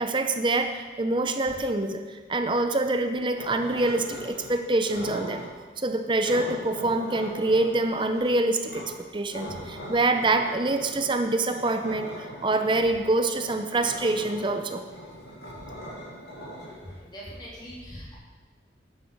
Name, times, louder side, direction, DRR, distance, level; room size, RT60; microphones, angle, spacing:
voice 1, 0.0-5.4 5.8-14.8, right 2 dB, 25° right, 7 dB, 0.6 m, -26 dB
sound 1, 3.3-4.5 4.8-5.5 6.2-8.9 9.3-17.3, equal, 65° left, 4.2 m, -40 dB
voice 2, 16.6-18.1, equal, 25° left, -6 dB, 3.3 m, -42 dB
11.0 x 8.3 x 6.7 m, 1.4 s
head